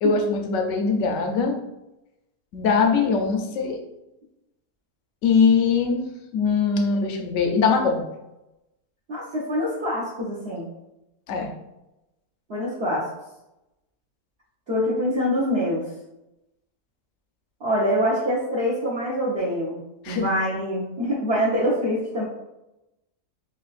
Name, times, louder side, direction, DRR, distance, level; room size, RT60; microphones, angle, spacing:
voice 1, 0.0-1.6 2.5-3.8 5.2-8.0 11.3-11.5 20.0-20.2, left 5 dB, 65° left, 3 dB, 0.9 m, -21 dB
voice 2, 9.1-10.7 12.5-13.1 14.7-15.8 17.6-19.8 20.1-22.2, equal, 50° right, -8 dB, 1.0 m, -25 dB
5.5 x 2.4 x 2.5 m, 0.93 s
omnidirectional pair, 1.6 m